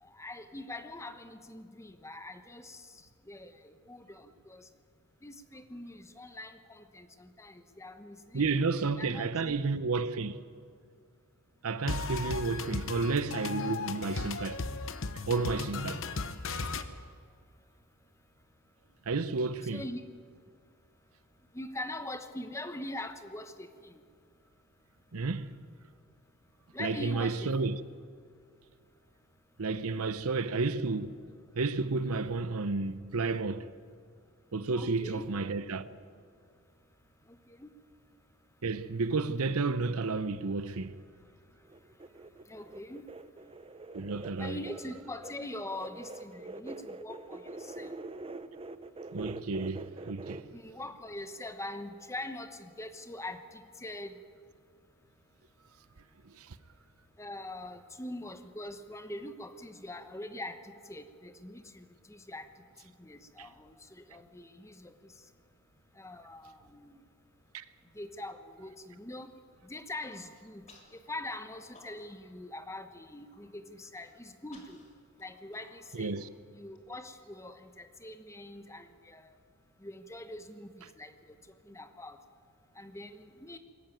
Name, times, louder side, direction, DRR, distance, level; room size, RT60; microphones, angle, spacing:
voice 1, 0.0-2.8 3.3-4.6 5.2-8.4 9.0-9.6 19.6-20.0 21.5-24.0 26.7-27.7 34.7-35.3 37.3-37.7 42.5-43.0 44.4-47.9 50.5-54.2 57.2-62.5 63.0-63.7 64.1-64.9 66.0-67.0 68.0-69.3 69.6-70.7 70.9-74.8 75.2-76.1 76.5-79.2 79.8-81.4 81.7-82.2 82.8-83.6, left 1 dB, 15° left, 1.0 m, -43 dB
voice 2, 8.3-10.3 11.6-14.6 15.3-16.0 19.1-19.8 25.1-25.6 26.8-27.8 29.6-31.1 31.6-33.7 34.5-35.9 38.6-40.9 43.9-44.6 49.1-50.4 56.4-56.6 63.4-63.5 67.5-67.6 75.9-76.3, right 3 dB, 70° right, 0.8 m, -31 dB
sound 1, 11.9-16.8, left 4 dB, 60° left, 1.0 m, -36 dB
sound 2, 41.7-50.4, right 2 dB, 25° right, 0.6 m, -44 dB
Human voice, 70.0-70.2 70.7-71.0 71.3-72.3 72.6-72.7 73.0-73.4 73.9-76.8, left 2 dB, 30° left, 3.0 m, -59 dB
22.0 x 14.0 x 9.2 m
head